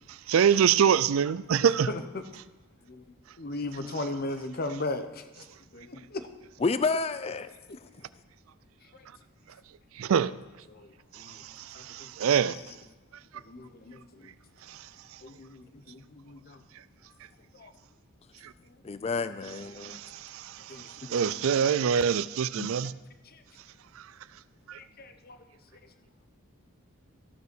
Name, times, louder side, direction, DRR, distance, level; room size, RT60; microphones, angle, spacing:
voice 1, 0.3-1.9 10.0-10.3 11.2-12.6 14.7-14.8 19.8-22.9 24.7-24.8, right 7 dB, 70° right, 0.4 m, -25 dB
voice 2, 1.9-2.2 2.9-3.0 3.4-5.4 5.7-6.3 7.7-7.8 8.9-9.1 10.7-11.4 11.7-12.5 13.3-14.4 15.2-16.6 17.5-17.7 18.6-18.8 19.4-19.6 20.7-20.9 21.2-22.0 23.2-23.4 24.7-25.4, left 2 dB, 45° left, 0.8 m, -38 dB
voice 3, 6.6-7.5 18.8-20.0 21.0-21.1 22.6-22.7, left 4 dB, 30° left, 0.3 m, -30 dB
14.0 x 5.5 x 6.0 m
head